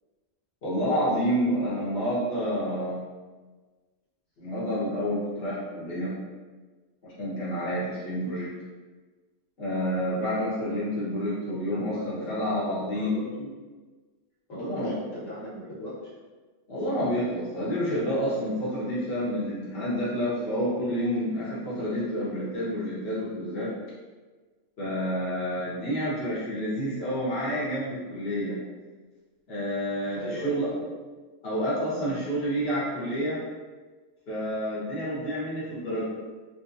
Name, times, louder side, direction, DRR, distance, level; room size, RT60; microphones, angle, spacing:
voice 1, 0.6-3.0 4.4-6.1 7.0-8.5 9.6-13.1 14.5-15.0 16.7-23.7 24.8-28.6 29.5-30.7 31.4-33.4 34.3-36.0, equal, 55° left, -8 dB, 1.2 m, -29 dB
voice 2, 11.7-12.4 12.8-13.5 14.5-16.1 30.1-30.9, equal, 80° left, -8 dB, 1.6 m, -38 dB
3.6 x 2.7 x 2.5 m, 1.3 s
omnidirectional pair, 1.3 m